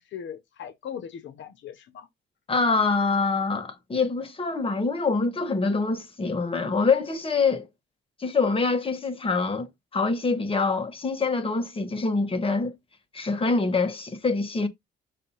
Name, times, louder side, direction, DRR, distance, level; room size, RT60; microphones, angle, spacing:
voice 1, 0.0-2.1, left 8 dB, 70° left, 1.0 m, -39 dB
voice 2, 2.5-7.7 8.2-12.7 13.1-14.7, left 4 dB, 25° left, 1.6 m, -25 dB
6.6 x 2.7 x 5.5 m
cardioid pair, 90°, 20 cm